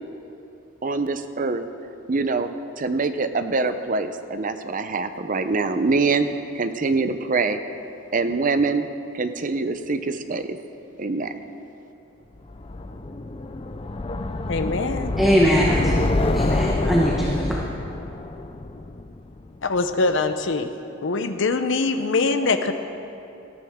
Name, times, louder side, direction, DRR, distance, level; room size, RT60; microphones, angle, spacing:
voice 1, 0.8-1.6 2.1-2.5 2.8-6.3 6.5-7.6 8.1-8.9 9.1-10.6 11.0-11.3, right 3 dB, 40° right, 9 dB, 0.7 m, -24 dB
sound 1, 12.5-19.6, left 2 dB, 30° left, 0.5 m, -26 dB
voice 2, 14.5-15.1 19.6-20.7 21.0-22.7, left 3 dB, 65° left, 8 dB, 0.8 m, -23 dB
voice 3, 15.2-17.6, equal, ahead, -5 dB, 1.2 m, -21 dB
18.0 x 14.0 x 3.7 m, 2.8 s
head